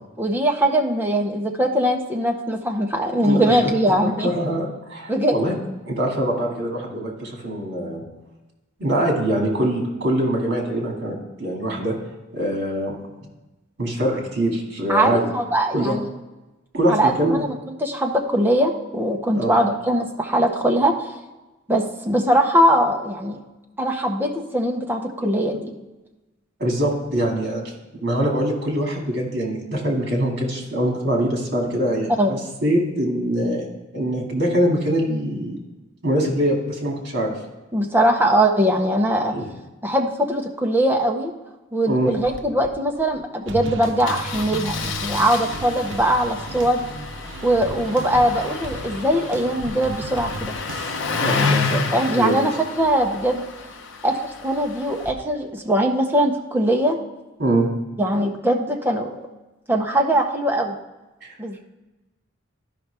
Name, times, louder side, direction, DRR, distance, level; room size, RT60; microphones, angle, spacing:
voice 1, 0.2-4.3 5.1-5.3 14.9-16.1 16.9-17.5 17.8-20.9 21.7-23.4 23.8-25.6 32.2-32.4 37.7-39.4 39.8-41.3 41.7-46.8 47.4-50.6 51.4-51.6 51.9-52.5 52.8-53.4 54.0-57.0 58.0-59.3 59.7-60.8 61.4-61.6, right 1 dB, 10° right, 1 dB, 0.7 m, -21 dB
voice 2, 3.1-3.6 4.0-5.5 5.9-8.0 8.8-11.9 12.3-13.0 13.8-15.2 15.7-15.9 16.7-17.4 19.3-19.5 25.5-25.6 26.6-27.6 28.0-33.6 33.9-35.6 36.0-37.3 39.3-39.5 41.9-42.1 51.2-52.3 57.4-57.7 61.2-61.4, right 1 dB, 55° right, 0 dB, 2.1 m, -23 dB
Engine starting, 42.1-42.4 42.6-42.7 43.0-43.2 44.1-55.1, left 4 dB, 70° left, 0.7 m, -30 dB
sound 1, 43.5-51.0, right 2 dB, 75° right, 0.7 m, -35 dB
12.0 x 5.5 x 3.4 m, 1.1 s
head